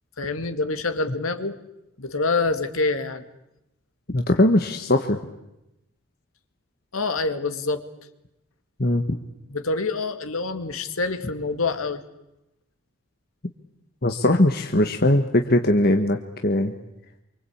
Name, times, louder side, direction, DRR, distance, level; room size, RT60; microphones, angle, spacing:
voice 1, 0.2-1.6 2.0-3.2 6.9-7.8 9.5-12.0, left 3 dB, 85° left, 8 dB, 2.2 m, -26 dB
voice 2, 4.1-5.2 8.8-9.0 14.0-16.7, left 1 dB, 45° left, 5 dB, 1.4 m, -20 dB
26.5 x 24.5 x 8.7 m, 0.90 s
head